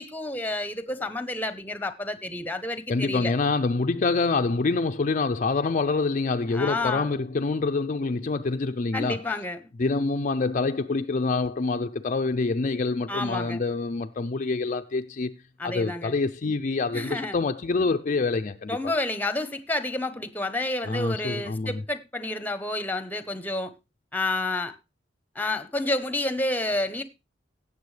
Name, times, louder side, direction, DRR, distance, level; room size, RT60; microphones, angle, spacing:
voice 1, 0.0-3.3 6.5-7.1 8.9-9.6 13.1-13.6 15.6-16.2 16.9-17.4 18.7-23.7 24.1-24.8 25.3-27.0, left 2 dB, 10° left, 0.9 m, -30 dB
voice 2, 2.9-9.2 9.8-15.3 15.6-18.8 20.9-21.8, left 3 dB, 40° left, 0.4 m, -26 dB
16.5 x 7.0 x 3.3 m
head